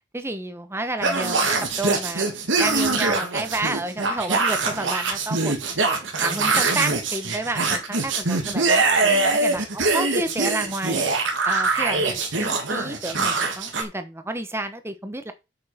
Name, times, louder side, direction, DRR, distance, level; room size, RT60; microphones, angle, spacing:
voice 1, 0.1-2.3 2.6-11.0 11.4-15.3, right 2 dB, 15° right, 9 dB, 1.2 m, -30 dB
sound 1, 1.0-13.8, right 3 dB, 85° right, 2.7 m, -23 dB
8.4 x 6.7 x 5.2 m, 0.26 s
head